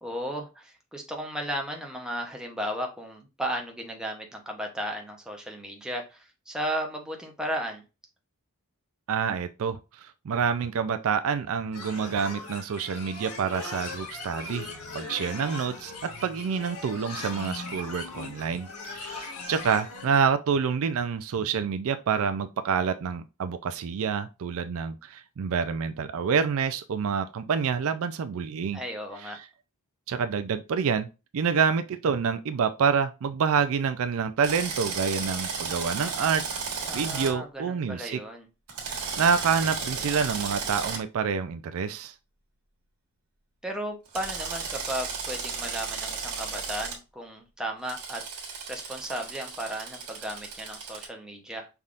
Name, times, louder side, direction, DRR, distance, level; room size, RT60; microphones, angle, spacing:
voice 1, 0.0-7.8 28.7-29.4 36.8-38.5 43.6-48.2 48.7-51.7, equal, 5° right, 0.8 m, -35 dB
voice 2, 9.1-14.7 14.9-15.9 16.2-28.8 29.2-29.3 30.1-31.1 31.3-36.4 36.9-38.2 39.2-42.1, right 6 dB, 65° right, 0.4 m, -27 dB
sound 1, 11.7-20.2, left 3 dB, 80° left, 1.5 m, -39 dB
Drill, 34.4-37.3 38.7-41.0 44.1-46.9 47.9-51.0, right 5 dB, 85° right, 1.4 m, -34 dB
5.5 x 3.5 x 2.5 m
head